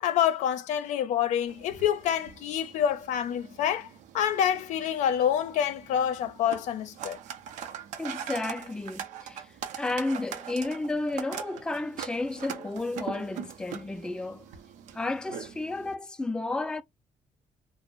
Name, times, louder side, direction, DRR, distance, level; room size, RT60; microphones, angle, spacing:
voice 1, 0.0-3.9 4.1-7.2, left 9 dB, 80° left, 0.5 m, -27 dB
sound 1, 1.5-15.9, right 9 dB, 80° right, 0.6 m, -42 dB
voice 2, 8.0-14.4 14.9-16.8, left 2 dB, 5° left, 0.3 m, -32 dB
2.5 x 2.0 x 3.6 m
supercardioid pair, 75°, 12 cm